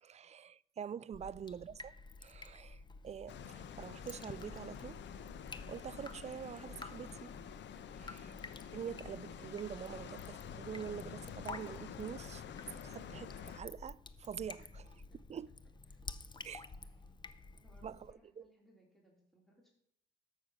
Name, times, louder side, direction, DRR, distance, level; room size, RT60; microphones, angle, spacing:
voice 1, 0.0-1.9 2.2-5.0 5.7-7.3 7.9-8.2 8.7-12.4 12.8-14.8 15.3-15.5 16.4-16.7 17.8-18.0 18.4-18.5, right 8 dB, 35° right, 0.4 m, -45 dB
Drip, 1.1-18.1, left 3 dB, 25° left, 0.7 m, -51 dB
voice 2, 1.2-1.5 8.0-8.4 14.6-14.7 15.1-15.2 15.9-16.0 16.8-16.9 17.5-19.7, right 1 dB, ahead, 3.4 m, -67 dB
sound 1, 3.3-13.6, left 8 dB, 65° left, 0.8 m, -49 dB
13.0 x 6.1 x 6.3 m
cardioid pair, 90°, 20 cm